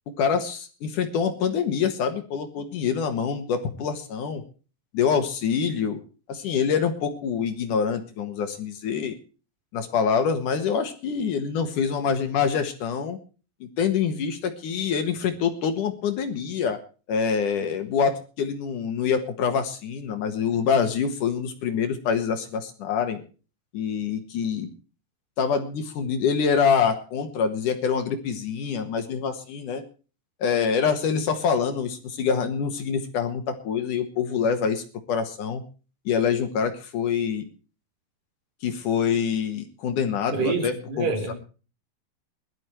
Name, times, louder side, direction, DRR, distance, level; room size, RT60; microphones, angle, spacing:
voice 1, 0.1-4.4 4.9-6.0 6.3-9.2 9.7-13.2 13.6-16.8 17.1-23.2 23.7-24.7 25.4-29.8 30.4-35.6 36.1-37.5 38.6-41.3, left 6 dB, 60° left, 8 dB, 2.8 m, -25 dB
voice 2, 40.3-41.3, right 4 dB, 60° right, 4 dB, 5.5 m, -27 dB
22.0 x 13.0 x 3.1 m, 0.36 s
omnidirectional pair, 4.3 m